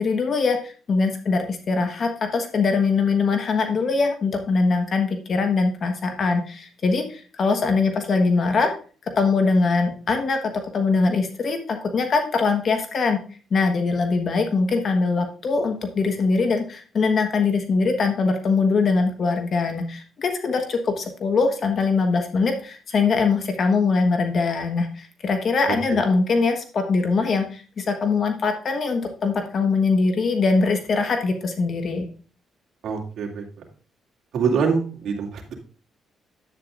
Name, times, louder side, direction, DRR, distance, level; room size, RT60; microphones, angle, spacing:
voice 1, 0.0-8.7 9.2-13.2 13.5-32.0, left 4 dB, 50° left, 5 dB, 1.2 m, -22 dB
voice 2, 25.7-26.0 32.8-33.7 34.3-35.5, right 5 dB, 70° right, 0 dB, 2.4 m, -25 dB
10.5 x 8.7 x 2.5 m, 0.39 s
cardioid pair, 90°, 0 cm